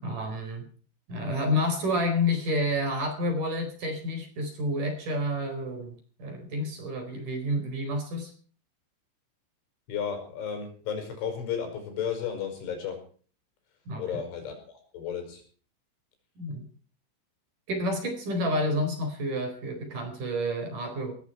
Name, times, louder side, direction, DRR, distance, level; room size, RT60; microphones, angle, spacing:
voice 1, 0.0-0.7 1.1-8.3 13.9-14.0 16.4-16.7 17.7-21.1, left 1 dB, 45° right, 6 dB, 5.5 m, -29 dB
voice 2, 9.9-13.0 14.0-15.4, left 7 dB, 70° left, 5 dB, 7.6 m, -33 dB
19.0 x 15.0 x 4.5 m, 0.42 s
omnidirectional pair, 5.7 m